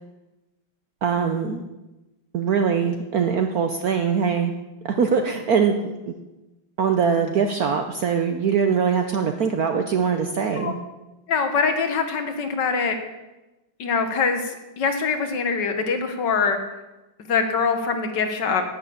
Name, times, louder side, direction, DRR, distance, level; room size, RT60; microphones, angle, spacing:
voice 1, 1.0-1.6 2.3-4.5 4.8-5.7 6.1-6.2 6.8-10.7, right 6 dB, 65° right, 5 dB, 0.9 m, -22 dB
voice 2, 11.3-13.0 13.8-14.4 14.8-16.6 17.3-18.6, left 5 dB, 60° left, 6 dB, 1.7 m, -23 dB
11.0 x 6.4 x 8.5 m, 1.1 s
omnidirectional pair, 2.3 m